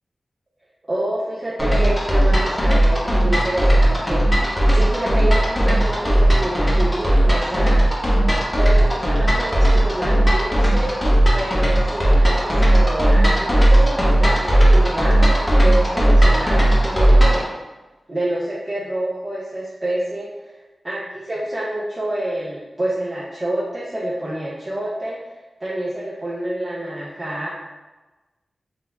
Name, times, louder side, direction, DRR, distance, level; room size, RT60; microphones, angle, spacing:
voice 1, 0.8-7.9 8.6-11.0 11.3-17.6 18.1-20.6 20.8-25.2 25.6-27.5, right 1 dB, 30° right, -6 dB, 0.5 m, -27 dB
sound 1, 1.6-17.5, right 1 dB, 15° left, 0.7 m, -16 dB
3.9 x 2.6 x 2.3 m, 1.1 s
wide cardioid pair, 95°, 0 cm